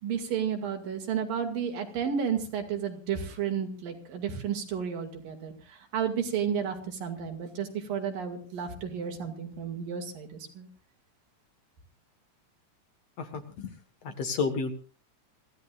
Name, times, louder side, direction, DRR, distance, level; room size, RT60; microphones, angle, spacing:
voice 1, 0.0-10.7, right 7 dB, 85° right, 4 dB, 4.0 m, -32 dB
voice 2, 13.2-13.7 14.0-14.7, left 4 dB, 55° left, 7 dB, 2.4 m, -31 dB
26.5 x 15.5 x 2.5 m, 0.38 s
omnidirectional pair, 3.8 m